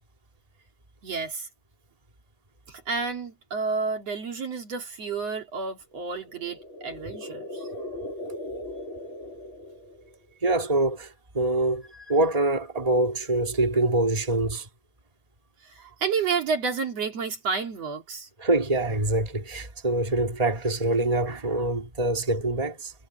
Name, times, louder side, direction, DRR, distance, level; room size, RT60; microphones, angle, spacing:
voice 1, 1.0-1.5 2.7-7.6 15.6-18.3, right 5 dB, 60° right, 3.5 m, -30 dB
sound 1, 6.1-10.3, left 1 dB, 40° left, 4.1 m, -38 dB
voice 2, 10.4-14.7 18.4-22.9, right 2 dB, 10° right, 3.1 m, -25 dB
omnidirectional pair, 3.4 m